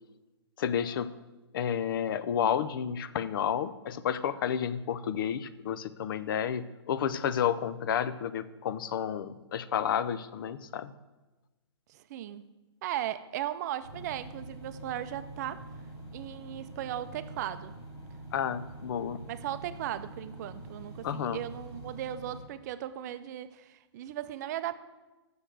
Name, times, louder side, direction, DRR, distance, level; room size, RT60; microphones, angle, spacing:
voice 1, 0.6-1.2 1.5-10.9 18.3-19.2 21.0-21.4, left 8 dB, 50° left, 15 dB, 0.5 m, -31 dB
voice 2, 11.9-12.4 12.8-15.6 16.1-17.8 19.3-24.7, right 12 dB, 40° right, 13 dB, 0.5 m, -37 dB
sound 1, 13.8-22.4, right 2 dB, 75° left, 3.1 m, -45 dB
6.8 x 6.4 x 7.6 m, 1.1 s
hypercardioid pair, 140°, 14 cm